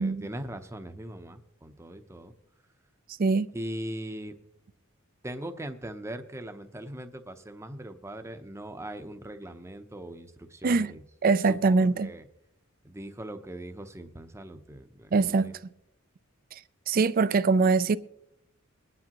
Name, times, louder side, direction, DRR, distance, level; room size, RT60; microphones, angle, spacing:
voice 1, 0.0-2.3 3.5-4.4 5.2-11.0 11.5-12.2 12.8-15.5, right 1 dB, 15° right, 0.7 m, -40 dB
voice 2, 3.2-3.5 10.6-10.9 11.2-12.1 15.1-15.5 16.5-16.6 16.9-18.0, right 4 dB, 40° right, 0.4 m, -23 dB
22.5 x 9.8 x 3.0 m
head